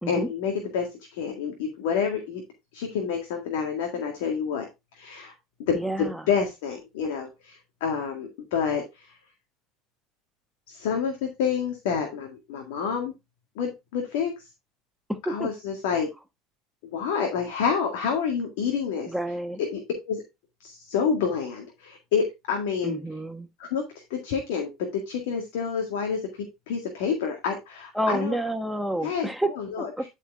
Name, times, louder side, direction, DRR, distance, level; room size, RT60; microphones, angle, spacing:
voice 1, 0.1-2.4 2.7-4.7 4.9-5.3 5.6-9.1 10.7-13.1 13.6-14.4 15.3-16.1 16.9-19.1 19.7-19.8 20.1-20.2 20.6-23.0 23.6-23.9 24.1-28.4 29.0-29.3 29.6-29.9, left 6 dB, 75° left, 1.9 m, -28 dB
voice 2, 5.7-6.2 15.1-15.5 19.1-19.6 22.8-23.5 27.9-29.5 29.8-30.0, right 1 dB, ahead, 1.4 m, -29 dB
11.0 x 4.6 x 3.5 m
hypercardioid pair, 90°, 0 cm